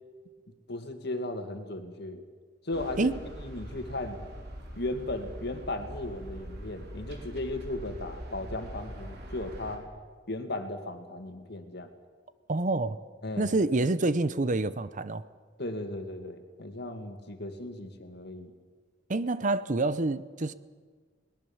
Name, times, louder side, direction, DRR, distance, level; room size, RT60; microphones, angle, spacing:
voice 1, 0.7-2.2 2.6-3.1 3.4-4.2 4.7-9.9 10.3-11.9 13.2-13.6 15.6-18.5, left 2 dB, 60° left, 6 dB, 2.2 m, -36 dB
sound 1, 2.7-9.8, equal, 55° right, 3.9 m, -43 dB
voice 2, 12.5-13.0 13.4-15.2 19.1-20.5, right 2 dB, 40° right, 15 dB, 0.7 m, -27 dB
21.5 x 19.5 x 7.2 m, 1.5 s
head